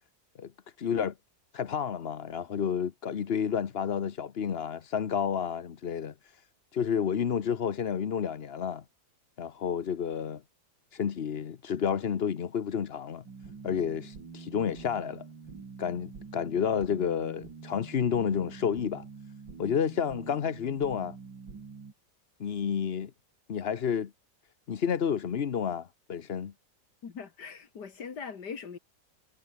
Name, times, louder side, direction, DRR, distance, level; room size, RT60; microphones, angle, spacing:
voice 1, 0.8-1.1 1.5-6.1 6.7-8.8 9.4-10.4 10.9-13.2 13.6-15.3 15.8-19.0 19.6-21.2 22.4-23.1 23.5-24.1 24.7-26.5, left 7 dB, 45° left, 0.9 m, -30 dB
sound 1, 13.3-21.9, right 5 dB, 80° right, 3.6 m, -46 dB
voice 2, 27.0-28.8, left 6 dB, 65° left, 2.6 m, -41 dB
omnidirectional pair, 2.0 m